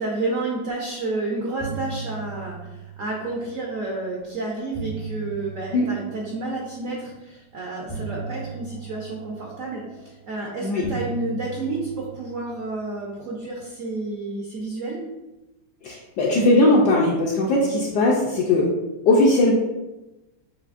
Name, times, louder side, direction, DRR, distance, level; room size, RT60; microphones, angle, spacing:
voice 1, 0.0-2.6 3.0-15.0, right 2 dB, 65° right, -2 dB, 0.8 m, -30 dB
sound 1, 0.9-1.2 1.4-3.8 4.4-6.9 7.9-10.3 10.8-13.4, right 5 dB, 35° left, 0.6 m, -37 dB
voice 2, 15.8-18.7 19.1-19.5, left 2 dB, 70° left, -4 dB, 1.1 m, -19 dB
6.7 x 2.7 x 2.5 m, 1.0 s
omnidirectional pair, 2.2 m